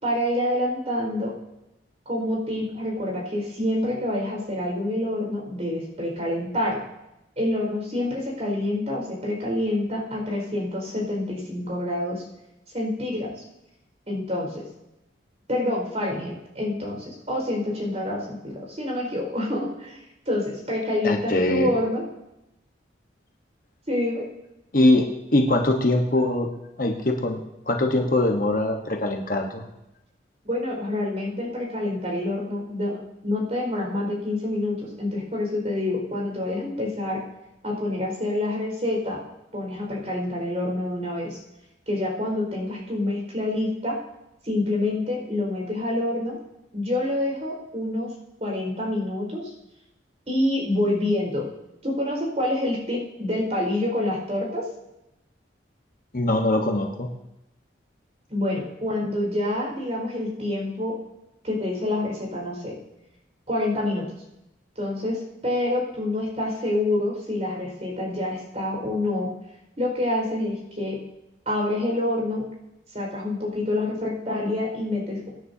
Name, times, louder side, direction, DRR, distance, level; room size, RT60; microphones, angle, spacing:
voice 1, 0.0-1.3 2.0-6.8 7.4-12.2 12.7-13.4 14.1-14.6 15.5-20.0 20.2-22.0 23.9-24.2 30.4-37.2 37.6-39.2 39.5-41.4 41.9-44.0 44.4-46.4 46.7-48.1 48.4-49.5 50.3-51.5 51.8-54.6 58.3-60.9 61.4-62.7 63.5-64.1 64.8-69.3 69.8-71.0 71.4-72.4 72.9-75.3, left 1 dB, 35° right, -1 dB, 4.7 m, -27 dB
voice 2, 21.0-21.7 24.7-25.1 25.3-26.5 26.8-29.6 56.1-57.1, left 1 dB, 45° left, 3 dB, 1.1 m, -22 dB
24.5 x 9.9 x 2.8 m, 0.91 s
head